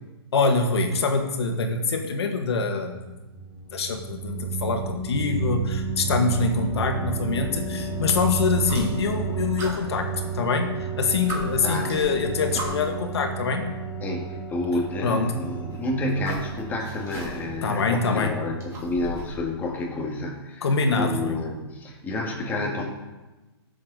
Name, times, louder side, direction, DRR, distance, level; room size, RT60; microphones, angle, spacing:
voice 1, 0.3-3.1 3.7-13.7 15.0-15.3 17.6-18.3 20.6-21.3, left 4 dB, 70° left, 4 dB, 2.0 m, -25 dB
sound 1, 3.0-19.7, right 4 dB, 5° right, 1.3 m, -32 dB
sound 2, 8.6-9.2 9.6-10.6 10.9-11.0 11.3-13.0 14.1-14.2 15.5-17.6 18.0-19.4, right 1 dB, 20° right, 3.1 m, -37 dB
voice 2, 14.0-20.7 20.9-22.9, left 2 dB, 15° left, -1 dB, 2.0 m, -29 dB
16.5 x 7.4 x 4.1 m, 1.1 s
hypercardioid pair, 145°, 14 cm